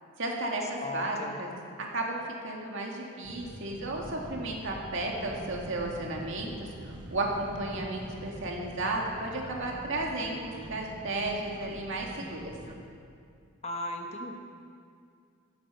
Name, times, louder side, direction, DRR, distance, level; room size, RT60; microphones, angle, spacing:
voice 1, 0.2-1.5 1.8-12.5, right 2 dB, 60° right, -1 dB, 2.1 m, -33 dB
voice 2, 0.8-1.4 13.6-14.3, left 1 dB, 30° left, 3 dB, 1.1 m, -36 dB
sound 1, 3.2-12.8, right 1 dB, 20° right, 1.3 m, -44 dB
15.5 x 9.7 x 5.7 m, 2.3 s
head